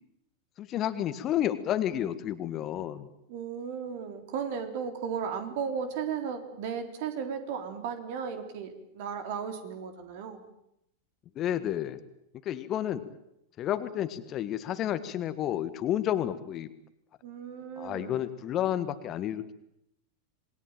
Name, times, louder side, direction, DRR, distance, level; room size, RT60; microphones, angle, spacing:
voice 1, 0.6-3.1 11.3-12.0 12.4-13.0 13.6-16.7 17.8-19.5, left 11 dB, 30° left, 12 dB, 1.7 m, -31 dB
voice 2, 3.3-10.4 17.2-18.2, right 7 dB, 50° right, 7 dB, 3.8 m, -35 dB
27.0 x 21.0 x 9.0 m, 0.79 s
figure-of-eight pair, 90°, 0 cm